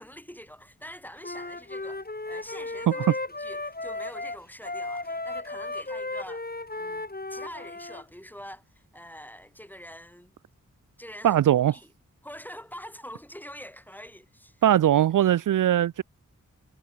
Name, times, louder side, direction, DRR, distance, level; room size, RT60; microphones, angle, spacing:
voice 1, 0.0-6.4 6.8-10.3 11.0-11.4 11.7-11.9 12.2-14.6, equal, 5° left, 7.9 m, -45 dB
Wind instrument woodwind instrument, 1.2-8.0, left 2 dB, 30° left, 3.7 m, -35 dB
voice 2, 11.2-11.8 14.6-16.0, right 11 dB, 70° right, 0.5 m, -20 dB
cardioid pair, 40°, 33 cm